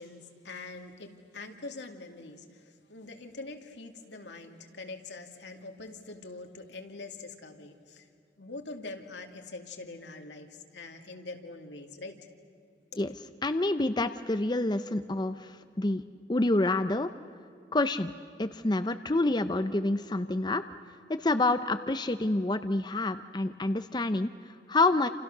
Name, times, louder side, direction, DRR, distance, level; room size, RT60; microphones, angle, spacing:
voice 1, 0.0-8.1 8.4-12.2, left 3 dB, 75° left, 4 dB, 2.5 m, -44 dB
voice 2, 13.4-16.0 16.3-17.1 17.7-18.1 18.4-20.6 21.1-25.1, left 2 dB, 25° left, 9 dB, 0.6 m, -28 dB
29.5 x 28.0 x 6.7 m, 2.4 s
head